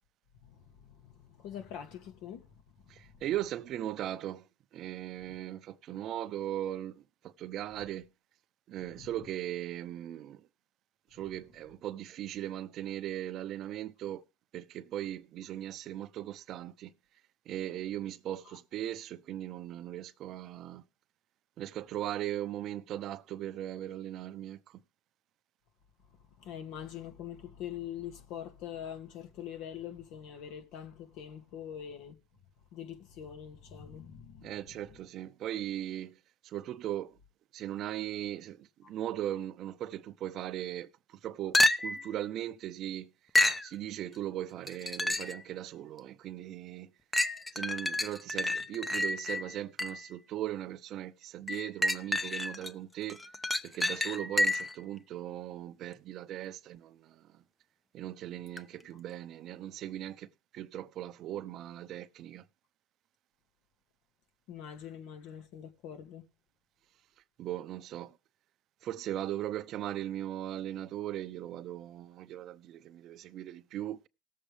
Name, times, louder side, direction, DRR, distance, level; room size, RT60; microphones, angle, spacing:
voice 1, 0.4-2.5 9.0-9.1 26.4-32.2 32.7-34.6 64.5-66.2, left 9 dB, 70° left, 2.2 m, -44 dB
voice 2, 2.9-4.4 4.7-8.1 8.7-10.4 11.1-14.2 14.5-16.9 17.5-20.8 21.6-24.8 34.4-36.2 36.4-37.1 37.5-40.9 41.2-43.1 43.6-46.9 47.5-53.2 53.6-57.2 57.9-60.3 60.5-62.4 67.4-68.2 68.8-74.1, right 12 dB, 55° right, 0.7 m, -38 dB
sound 1, 41.5-42.1 43.3-43.7 44.7-45.4 46.0-46.1 47.1-50.1 51.5-52.7 53.1-54.8 58.6-58.7, left 1 dB, 15° left, 0.8 m, -29 dB
18.5 x 7.5 x 3.3 m
supercardioid pair, 100°, 0 cm